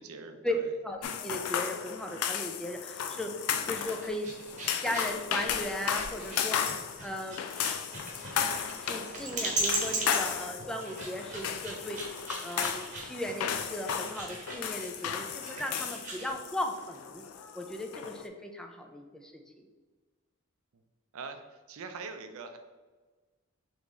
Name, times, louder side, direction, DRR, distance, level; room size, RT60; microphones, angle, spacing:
voice 1, 0.0-0.7 21.1-22.6, right 4 dB, 70° right, 8 dB, 0.4 m, -43 dB
voice 2, 0.8-4.3 4.8-6.6 7.0-7.4 8.8-12.1 12.4-17.2 17.5-19.3 19.6-19.7, left 1 dB, 5° left, 3 dB, 0.3 m, -37 dB
sound 1, 1.0-18.3, left 8 dB, 85° left, 0.4 m, -35 dB
sound 2, 3.7-16.3, right 2 dB, 35° right, 1.0 m, -38 dB
3.8 x 3.0 x 3.7 m, 1.3 s
head